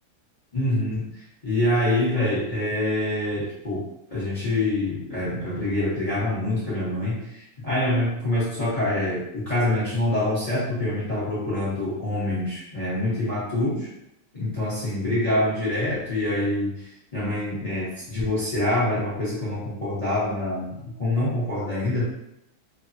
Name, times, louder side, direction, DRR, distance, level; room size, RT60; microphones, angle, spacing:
voice 1, 0.5-13.9 14.3-22.0, left 1 dB, 30° left, -11 dB, 0.7 m, -26 dB
3.2 x 2.1 x 2.6 m, 0.81 s
omnidirectional pair, 1.9 m